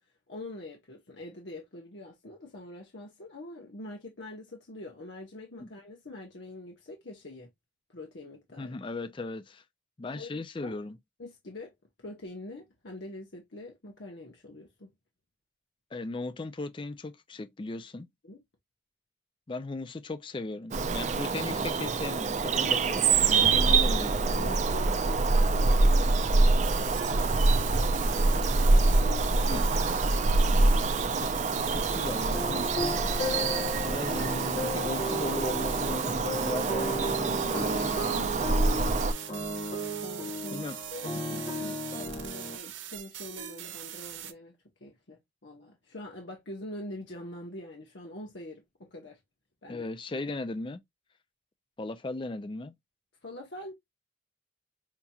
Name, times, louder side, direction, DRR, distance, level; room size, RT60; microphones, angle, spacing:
voice 1, 0.3-7.5 7.9-8.8 10.1-10.8 11.2-11.7 12.0-14.9 18.2-18.4 23.5-24.0 24.3-26.7 27.1-27.5 28.2-30.0 30.3-31.1 40.0-44.5 44.8-49.2 49.6-49.8 53.2-53.7, left 1 dB, 70° left, 1.1 m, -44 dB
voice 2, 8.6-9.6 10.0-11.0 15.9-18.1 19.5-24.5 28.9-29.0 29.5-29.6 31.1-31.3 31.7-33.0 33.9-34.4 34.7-38.8 40.5-40.8 49.7-50.8 51.8-52.7, left 2 dB, 25° left, 0.4 m, -37 dB
Bird vocalization bird call bird song, 20.7-39.1, right 3 dB, 40° right, 0.4 m, -25 dB
sound 1, 26.6-44.3, right 10 dB, 90° right, 0.7 m, -42 dB
sound 2, 32.3-42.6, left 1 dB, 45° left, 1.0 m, -35 dB
5.8 x 2.8 x 2.3 m
head